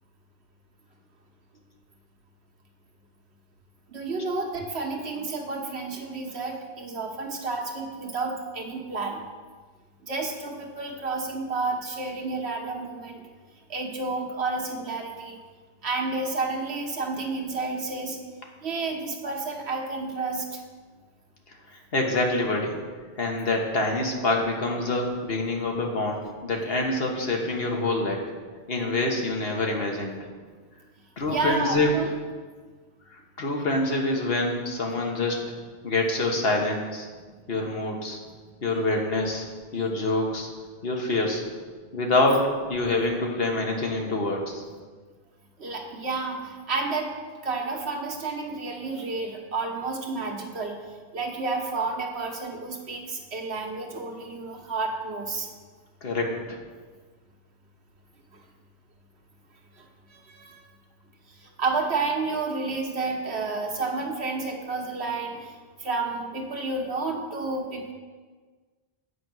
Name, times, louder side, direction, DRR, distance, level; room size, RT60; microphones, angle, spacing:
voice 1, 3.9-9.2 10.1-13.2 13.7-15.4 15.8-18.2 18.6-20.6 31.2-32.1 38.7-38.8 45.6-47.1 47.4-50.7 51.1-55.5 60.3-60.6 61.6-65.5 65.8-67.9, right 3 dB, 80° right, 1 dB, 1.5 m, -30 dB
voice 2, 21.7-22.7 23.2-28.3 28.7-30.2 31.2-32.1 33.1-35.4 35.8-37.1 37.5-38.2 38.6-39.4 39.7-40.5 40.8-41.4 41.9-44.6 56.0-56.6, left 2 dB, 65° left, 1 dB, 1.5 m, -26 dB
8.4 x 5.3 x 7.7 m, 1.5 s
omnidirectional pair, 1.1 m